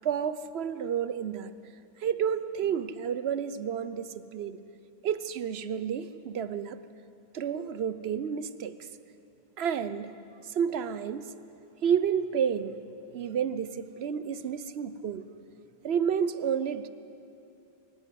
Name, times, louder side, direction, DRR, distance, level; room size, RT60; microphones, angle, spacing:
voice 1, 0.0-1.5 2.0-4.6 5.0-6.8 7.3-8.7 9.6-10.1 10.5-11.3 11.8-12.7 13.1-15.2 15.8-16.9, right 8 dB, 75° right, 13 dB, 1.0 m, -30 dB
24.0 x 14.5 x 9.4 m, 2.7 s
omnidirectional pair, 1.1 m